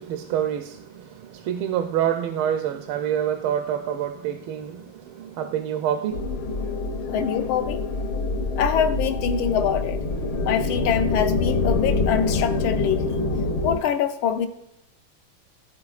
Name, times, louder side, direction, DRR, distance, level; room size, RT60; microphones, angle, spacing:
voice 1, 0.0-6.3, right 9 dB, 85° right, 6 dB, 1.4 m, -27 dB
sound 1, 6.1-13.8, left 3 dB, 70° left, 1.7 m, -25 dB
voice 2, 7.1-7.8 8.6-10.0 10.4-13.2 13.6-14.5, left 8 dB, 85° left, 8 dB, 1.5 m, -24 dB
14.0 x 4.8 x 2.4 m, 0.80 s
omnidirectional pair, 2.3 m